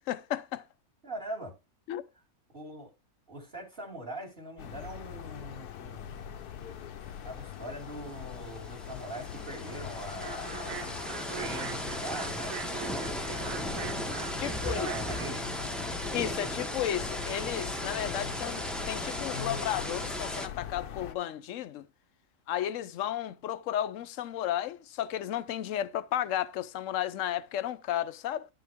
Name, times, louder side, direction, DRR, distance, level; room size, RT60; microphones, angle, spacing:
voice 1, 0.1-0.6 1.9-2.0 14.3-14.9 16.1-21.9 22.5-28.5, left 11 dB, 65° left, 0.9 m, -33 dB
voice 2, 1.0-1.5 2.5-2.9 3.3-6.3 7.2-12.5 12.9-15.5, right 1 dB, 35° right, 2.7 m, -42 dB
sound 1, 4.6-21.2, left 9 dB, 80° left, 1.3 m, -42 dB
sound 2, 7.5-7.6 7.9-20.5, equal, ahead, 0.7 m, -37 dB
sound 3, 10.2-15.2, right 10 dB, 90° right, 1.3 m, -42 dB
11.5 x 5.6 x 3.5 m
omnidirectional pair, 1.6 m